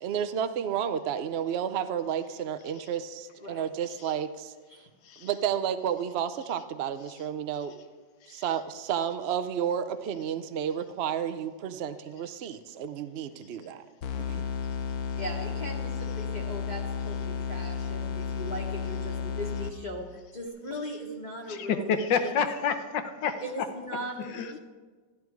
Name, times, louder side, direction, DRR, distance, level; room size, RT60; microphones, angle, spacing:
voice 1, 0.0-4.5 5.2-7.7 8.3-13.9 14.3-14.4, right 8 dB, 75° right, 10 dB, 0.5 m, -31 dB
voice 2, 3.4-3.7 4.7-4.9 15.2-22.3 23.4-24.6, equal, 25° left, -2 dB, 1.3 m, -39 dB
sound 1, 14.0-20.1, left 6 dB, 65° left, 1.2 m, -33 dB
voice 3, 21.5-23.3 24.3-24.6, left 6 dB, 80° left, 9 dB, 1.6 m, -28 dB
13.5 x 11.5 x 4.7 m, 1.4 s
omnidirectional pair, 1.9 m